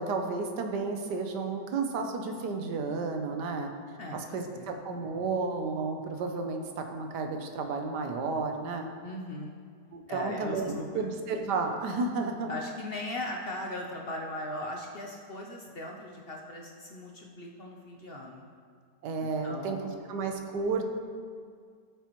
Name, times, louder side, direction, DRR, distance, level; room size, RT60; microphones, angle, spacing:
voice 1, 0.0-3.7 4.1-8.9 9.9-12.5 19.0-19.8 20.1-20.9, right 4 dB, 75° right, 4 dB, 1.4 m, -32 dB
voice 2, 4.0-4.7 9.0-9.5 10.1-11.0 12.5-18.5 19.2-19.9, left 1 dB, 60° left, 0 dB, 0.6 m, -39 dB
13.0 x 6.9 x 3.0 m, 2.1 s
omnidirectional pair, 1.9 m